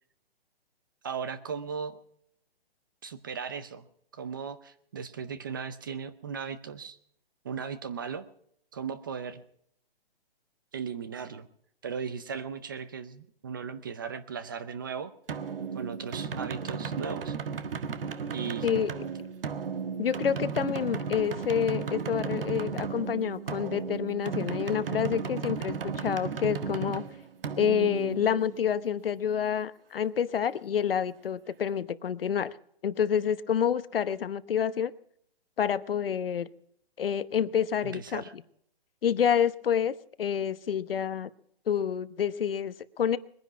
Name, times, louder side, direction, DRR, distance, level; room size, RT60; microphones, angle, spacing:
voice 1, 1.0-2.0 3.0-3.8 4.1-7.0 7.4-8.2 8.7-9.4 10.7-11.5 11.8-15.1 15.7-17.4 18.3-18.7 37.8-38.3, right 6 dB, 20° right, 13 dB, 0.6 m, -37 dB
sound 1, 15.3-28.8, right 6 dB, 65° right, 1.5 m, -35 dB
voice 2, 20.0-27.0 27.6-32.5 32.8-34.9 35.6-36.5 37.0-38.4 39.0-41.3 41.7-43.2, left 8 dB, 65° left, 16 dB, 1.0 m, -28 dB
21.5 x 10.5 x 6.0 m, 0.68 s
hypercardioid pair, 165°, 31 cm